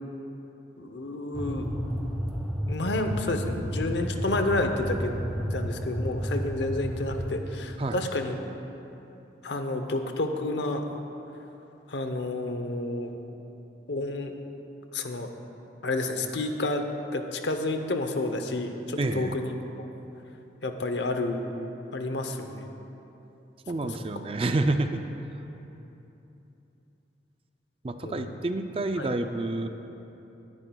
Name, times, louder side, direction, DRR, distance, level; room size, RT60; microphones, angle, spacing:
voice 1, 0.8-1.7 2.7-8.4 9.4-10.8 11.9-13.1 13.9-14.3 14.9-15.3 15.8-16.8 17.1-19.9 20.6-21.5 21.9-22.7 23.8-24.0 28.0-28.4 29.0-29.1, left 2 dB, 75° left, 6 dB, 0.8 m, -30 dB
sound 1, 1.3-7.3, equal, ahead, 0.7 m, -32 dB
voice 2, 19.0-19.3 23.7-25.0 27.8-29.7, right 2 dB, 30° right, 7 dB, 0.4 m, -28 dB
19.5 x 9.8 x 2.3 m, 3.0 s
head